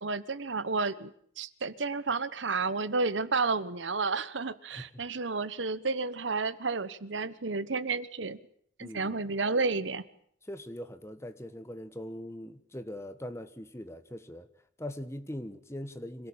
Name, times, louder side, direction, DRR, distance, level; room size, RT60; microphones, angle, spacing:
voice 1, 0.0-8.4 8.8-10.1, right 4 dB, 90° right, 1.2 m, -31 dB
voice 2, 4.7-5.0 8.8-9.2 10.4-14.5 14.8-16.3, left 1 dB, 15° left, 1.3 m, -41 dB
26.0 x 17.5 x 8.8 m
head